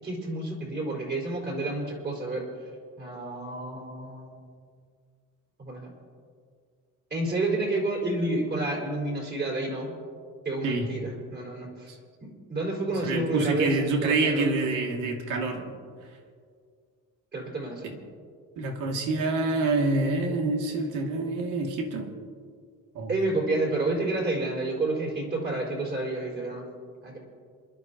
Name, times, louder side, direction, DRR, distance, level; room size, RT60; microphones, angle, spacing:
voice 1, 0.0-2.5 3.0-4.3 5.6-5.9 7.1-9.9 10.4-11.9 12.2-14.7 17.3-18.0 23.1-26.6 27.0-27.2, right 2 dB, 30° right, -1 dB, 4.9 m, -30 dB
voice 2, 13.0-15.8 17.8-17.9 18.6-22.1 22.9-23.1, right 2 dB, 75° right, 2 dB, 2.3 m, -27 dB
28.0 x 12.0 x 2.9 m, 2.1 s
cardioid pair, 140°, 31 cm